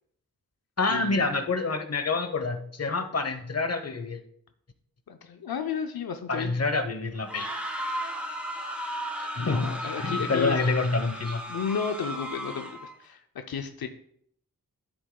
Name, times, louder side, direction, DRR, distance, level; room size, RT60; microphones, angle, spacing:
voice 1, 0.8-4.2 6.3-7.5 9.2-11.4, left 3 dB, 45° left, 8 dB, 1.0 m, -27 dB
voice 2, 5.1-6.5 9.3-10.6 11.5-13.9, left 7 dB, 85° left, 7 dB, 0.6 m, -33 dB
sound 1, 7.2-12.9, equal, 5° right, 2.1 m, -35 dB
10.0 x 7.9 x 2.2 m, 0.68 s
cardioid pair, 40°, 36 cm